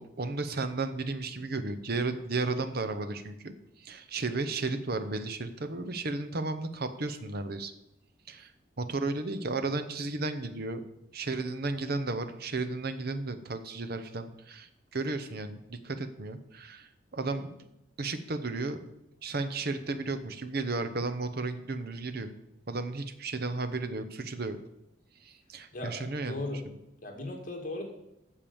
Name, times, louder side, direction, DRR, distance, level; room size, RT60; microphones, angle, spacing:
voice 1, 0.0-7.7 8.3-8.5 8.8-10.8 11.1-17.6 18.0-18.8 19.2-22.3 22.7-24.6 25.2-26.4, right 3 dB, 55° right, 9 dB, 0.8 m, -34 dB
voice 2, 26.2-26.6 27.0-27.8, left 2 dB, 45° left, 1 dB, 2.0 m, -36 dB
8.8 x 6.8 x 7.1 m, 0.86 s
head